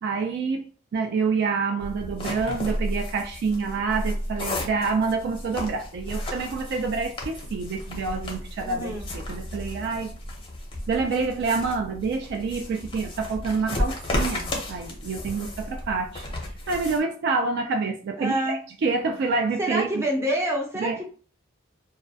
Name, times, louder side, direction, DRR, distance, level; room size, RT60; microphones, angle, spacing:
voice 1, 0.0-10.2 10.9-16.2 16.7-20.0 20.8-21.0, right 4 dB, 55° right, 0.3 m, -27 dB
sound 1, 1.8-17.0, left 1 dB, 25° left, 0.6 m, -33 dB
voice 2, 8.6-9.1 18.2-18.6 19.6-21.0, right 1 dB, 15° right, 0.6 m, -27 dB
2.2 x 2.1 x 2.6 m
head